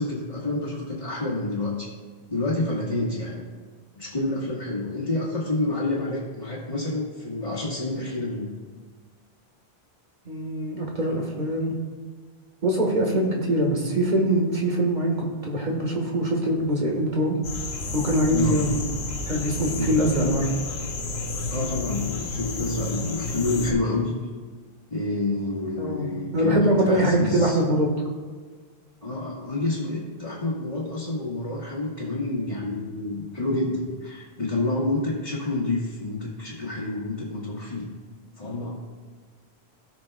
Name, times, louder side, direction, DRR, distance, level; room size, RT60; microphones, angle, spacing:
voice 1, 0.0-1.9 2.3-3.4 3.9-8.5 18.3-18.6 19.7-20.0 21.5-24.2 24.9-27.6 29.0-37.9 38.4-38.7, left 2 dB, 35° left, -8 dB, 1.7 m, -28 dB
voice 2, 10.2-11.7 12.6-17.4 17.9-18.7 19.3-20.5 25.8-27.9, right 1 dB, 45° right, -1 dB, 1.7 m, -23 dB
sound 1, 17.4-23.7, left 3 dB, 80° left, 1.2 m, -31 dB
18.0 x 6.0 x 2.3 m, 1.5 s
omnidirectional pair, 1.0 m